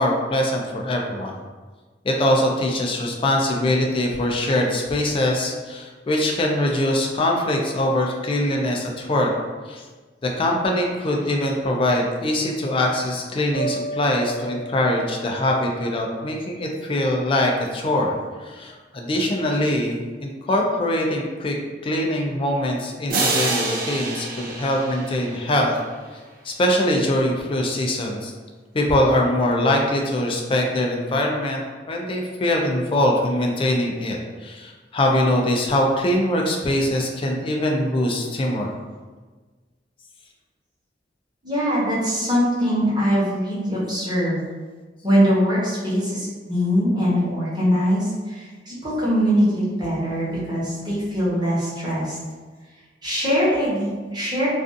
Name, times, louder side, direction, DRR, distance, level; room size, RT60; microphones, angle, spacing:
voice 1, 0.0-1.4 2.0-9.3 9.7-9.8 10.2-21.6 21.8-25.8 26.4-28.3 28.7-38.7, left 1 dB, 30° left, 0 dB, 0.4 m, -22 dB
sound 1, 13.5-16.6, right 2 dB, 80° left, 0.9 m, -34 dB
sound 2, 23.1-25.8, right 3 dB, 55° right, 0.4 m, -26 dB
voice 2, 41.4-44.4 45.0-52.2 53.0-54.5, equal, 25° right, -9 dB, 1.0 m, -22 dB
2.5 x 2.3 x 2.4 m, 1.4 s
head